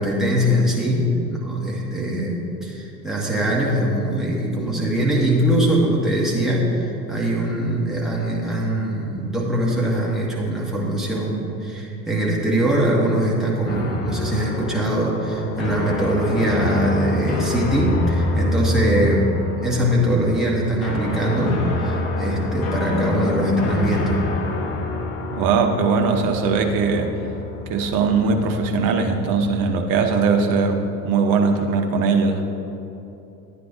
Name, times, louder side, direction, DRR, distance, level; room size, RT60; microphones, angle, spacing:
voice 1, 0.0-19.3 19.6-24.3, right 1 dB, ahead, -5 dB, 2.1 m, -22 dB
sound 1, 13.7-29.6, left 2 dB, 45° left, 1.5 m, -27 dB
voice 2, 25.3-27.1 27.7-32.5, right 4 dB, 45° right, 4 dB, 1.0 m, -20 dB
11.5 x 9.6 x 2.8 m, 2.9 s
figure-of-eight pair, 75°, 48 cm